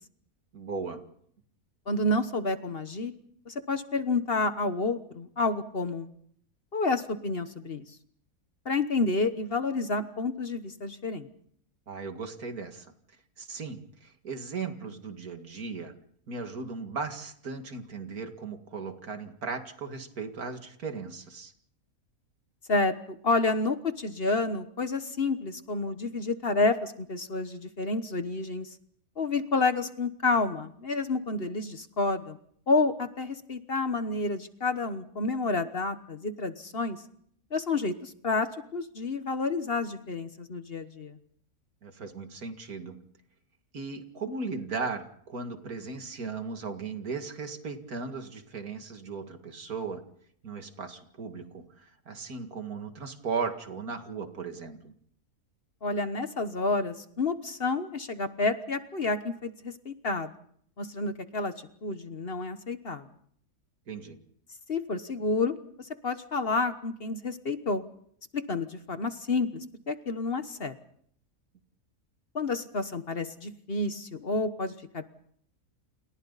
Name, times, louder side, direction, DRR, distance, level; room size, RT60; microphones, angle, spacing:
voice 1, 0.5-1.0 11.9-12.9 13.4-15.9 16.3-21.5 41.8-43.0 43.7-50.0 50.4-54.9 63.9-64.2, right 4 dB, 75° right, 6 dB, 2.6 m, -37 dB
voice 2, 1.9-3.1 3.5-6.1 6.7-7.8 8.6-11.3 22.7-28.7 29.2-32.4 32.7-37.0 37.5-41.2 55.8-60.3 60.8-61.5 61.8-63.0 64.7-67.8 68.3-70.7 72.3-75.1, left 3 dB, 45° left, 10 dB, 1.3 m, -29 dB
29.5 x 28.5 x 4.1 m, 0.65 s
omnidirectional pair, 1.6 m